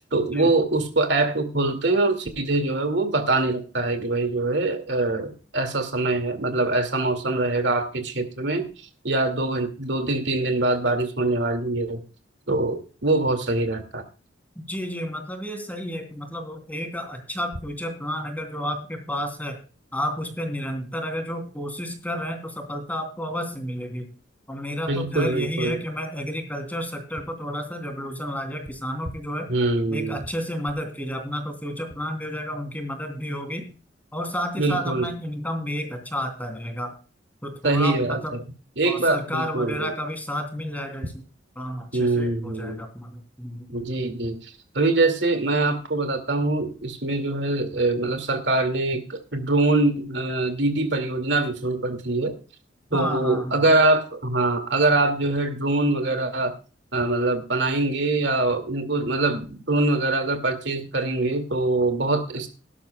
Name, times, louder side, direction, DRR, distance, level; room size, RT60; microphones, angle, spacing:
voice 1, 0.0-8.6 9.0-12.0 12.5-14.0 24.9-25.7 29.5-30.2 34.6-35.1 37.6-38.4 38.8-39.9 41.9-42.8 43.7-52.4 52.9-56.5 56.9-62.5, right 2 dB, 65° right, 7 dB, 2.3 m, -23 dB
voice 2, 14.5-19.6 19.9-24.1 24.5-29.5 29.9-33.7 34.1-36.9 37.4-38.3 38.8-41.2 41.5-43.7 52.9-53.6, equal, 10° left, 5 dB, 3.0 m, -31 dB
18.0 x 12.0 x 2.3 m, 0.35 s
head